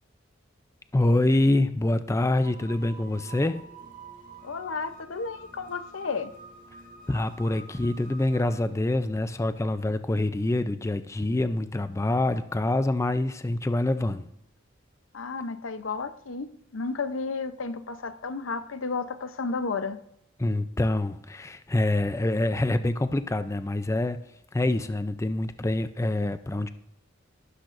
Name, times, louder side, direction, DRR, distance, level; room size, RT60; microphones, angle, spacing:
voice 1, 0.9-3.6 7.1-14.3 20.4-24.2 24.5-26.7, left 1 dB, 15° left, 0.4 m, -26 dB
sound 1, 2.4-9.1, right 3 dB, 45° right, 1.8 m, -48 dB
voice 2, 4.4-6.3 15.1-20.0, left 4 dB, 85° left, 0.7 m, -32 dB
15.0 x 12.5 x 2.6 m
head